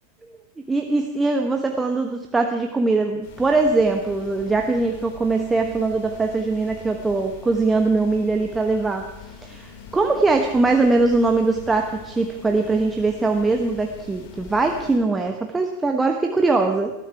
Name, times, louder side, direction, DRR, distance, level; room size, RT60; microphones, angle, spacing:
voice 1, 0.7-16.9, right 3 dB, 10° right, 4 dB, 1.1 m, -21 dB
sound 1, 3.2-15.0, left 5 dB, 50° left, 3.0 m, -43 dB
19.5 x 13.5 x 4.7 m, 0.96 s
figure-of-eight pair, 90°, 0 cm